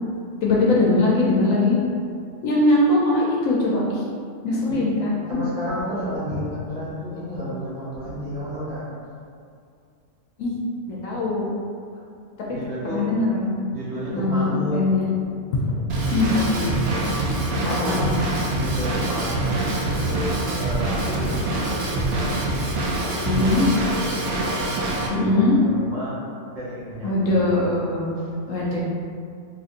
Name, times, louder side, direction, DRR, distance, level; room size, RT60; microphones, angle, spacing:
voice 1, 0.4-1.8 2.4-4.0 4.4-5.4 10.4-10.6 10.9-11.5 12.9-13.5 14.1-15.1 15.6-15.7 16.1-16.7 17.6-18.1 23.3-23.6 25.1-25.6 27.0-28.1 28.5-28.8, left 2 dB, 65° left, -5 dB, 0.9 m, -21 dB
voice 2, 5.3-8.9 12.5-13.1 13.6-14.8 17.5-22.4 23.0-26.2 26.5-27.6 28.2-28.3, equal, 55° right, -8 dB, 1.0 m, -32 dB
Drum kit / Drum, 15.9-25.1, right 2 dB, 80° right, 0.5 m, -25 dB
3.8 x 2.8 x 2.5 m, 2.3 s
omnidirectional pair, 1.6 m